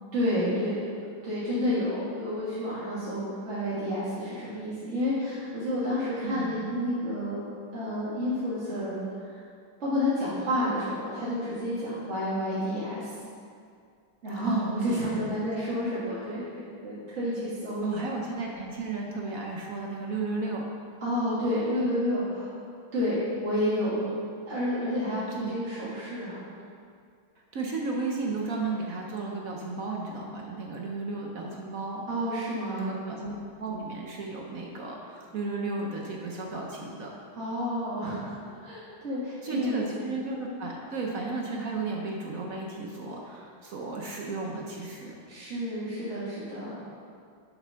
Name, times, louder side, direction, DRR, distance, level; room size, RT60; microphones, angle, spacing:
voice 1, 0.1-0.8 1.2-7.4 7.7-9.4 9.8-13.1 14.2-18.1 21.0-22.6 22.9-24.0 24.5-26.4 32.1-33.0 37.3-40.1 45.3-46.8, left 1 dB, 35° right, -11 dB, 2.1 m, -30 dB
voice 2, 6.2-6.8 14.4-15.0 15.3-15.4 17.8-20.7 24.0-24.2 25.3-25.6 27.5-32.1 32.7-37.1 39.4-45.2, right 3 dB, 55° right, -1 dB, 1.0 m, -34 dB
6.9 x 6.6 x 5.7 m, 2.3 s
omnidirectional pair, 2.2 m